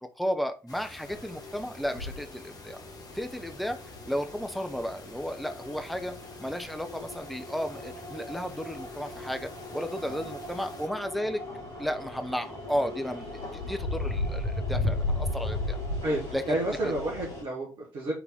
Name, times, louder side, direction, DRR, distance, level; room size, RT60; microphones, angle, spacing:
voice 1, 0.2-2.8 3.1-3.8 4.1-11.4 11.8-15.8 16.3-16.6 16.8-16.9, equal, ahead, 7 dB, 0.8 m, -33 dB
sound 1, 0.7-10.9, left 2 dB, 40° left, 1.5 m, -48 dB
sound 2, 1.0-17.4, left 2 dB, 60° left, 3.4 m, -36 dB
voice 2, 10.0-10.3 16.0-16.2 16.5-18.1, right 1 dB, 55° right, -3 dB, 1.6 m, -30 dB
5.8 x 3.9 x 4.2 m, 0.32 s
figure-of-eight pair, 50°, 10 cm